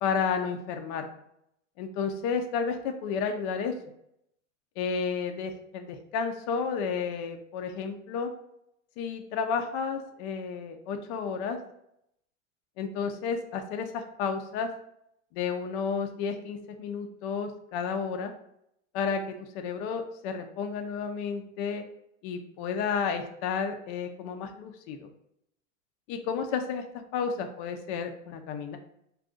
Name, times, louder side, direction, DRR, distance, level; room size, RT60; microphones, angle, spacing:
voice 1, 0.0-1.1 1.8-3.7 4.8-8.3 9.0-11.6 12.8-14.7 15.3-18.3 18.9-21.8 22.2-25.1 26.1-26.8 27.1-28.8, left 6 dB, 60° left, 5 dB, 0.5 m, -31 dB
2.5 x 2.3 x 3.6 m, 0.76 s
hypercardioid pair, 105°, 38 cm